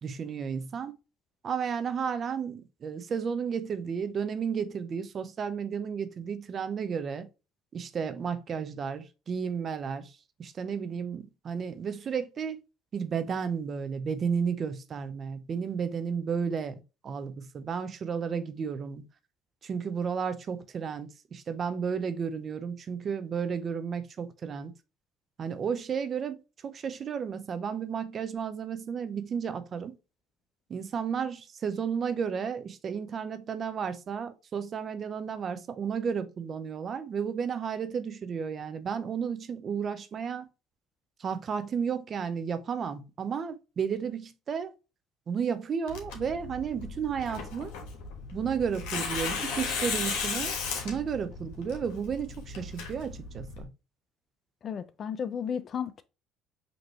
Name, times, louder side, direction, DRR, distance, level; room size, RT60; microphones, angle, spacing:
voice 1, 0.0-0.9 1.4-7.3 7.7-10.1 10.4-12.6 12.9-19.0 19.6-24.7 25.4-29.9 30.7-40.5 41.2-44.7 45.3-47.8 48.3-50.6 50.8-53.7, right 6 dB, 45° right, 0.7 m, -33 dB
Tearing, 45.9-53.6, left 5 dB, 75° left, 1.3 m, -36 dB
voice 2, 54.6-56.0, left 7 dB, 45° left, 0.5 m, -33 dB
5.2 x 3.0 x 3.0 m
hypercardioid pair, 70°, 0 cm